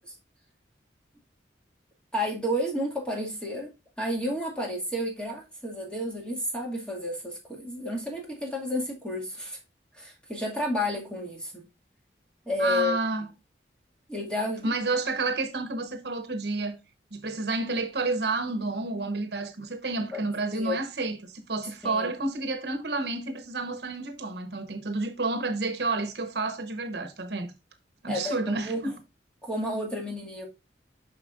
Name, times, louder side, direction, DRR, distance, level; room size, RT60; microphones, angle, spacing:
voice 1, 2.1-3.7 4.0-9.6 9.9-11.6 12.5-13.0 14.1-14.7 20.1-20.3 20.5-20.8 21.8-22.1 28.1-28.8 29.4-30.5, left 1 dB, 5° left, 2.1 m, -31 dB
voice 2, 12.6-13.3 14.6-16.8 17.1-27.5 28.0-29.0, right 3 dB, 70° right, 1.0 m, -30 dB
7.2 x 5.9 x 2.5 m
head